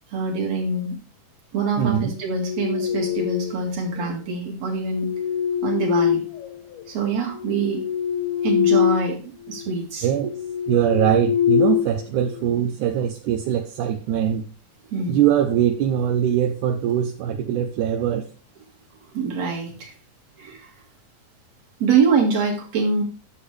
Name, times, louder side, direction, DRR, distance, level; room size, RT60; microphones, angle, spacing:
voice 1, 0.1-1.0 1.5-5.1 5.6-6.2 6.9-7.8 8.4-10.1 14.9-15.2 19.1-19.9 20.4-20.7 21.8-23.0, right 4 dB, 50° right, 0 dB, 2.9 m, -24 dB
voice 2, 1.8-2.1 10.0-10.3 10.7-14.4 15.1-18.3, right 10 dB, 75° right, 5 dB, 2.0 m, -22 dB
sound 1, 2.2-3.7 4.7-6.8 7.3-9.2 9.5-9.7 10.2-12.6, left 10 dB, 80° left, 2.0 m, -24 dB
10.0 x 7.5 x 3.3 m, 0.37 s
omnidirectional pair, 4.1 m